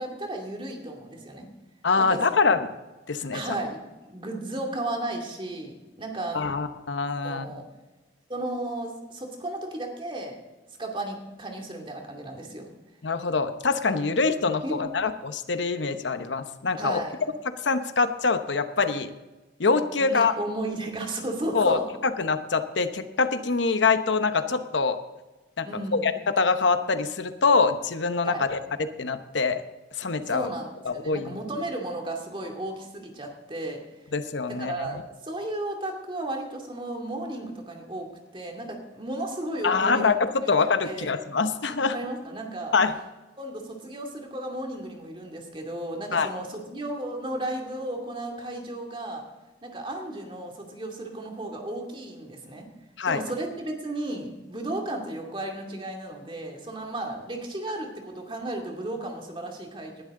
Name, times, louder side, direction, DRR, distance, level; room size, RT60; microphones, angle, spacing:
voice 1, 0.0-1.5 2.0-2.2 3.3-6.4 7.2-7.6 8.3-10.4 10.8-12.7 14.6-14.8 16.8-17.2 20.0-21.8 25.6-26.1 28.2-28.4 30.3-33.8 34.6-38.1 38.3-40.5 40.8-41.1 41.9-42.7 43.4-49.2 49.6-52.7 53.1-60.0, right 1 dB, 30° right, 2 dB, 2.3 m, -34 dB
voice 2, 1.8-2.6 3.1-3.4 6.3-7.5 13.0-17.0 17.6-19.1 19.6-20.3 21.5-25.0 25.6-28.6 29.0-29.6 30.0-30.5 30.9-31.4 34.1-34.7 39.6-42.0 42.7-42.9 46.1-46.3 53.0-53.2, left 4 dB, 75° left, 10 dB, 0.9 m, -24 dB
19.5 x 11.5 x 3.7 m, 1.1 s
head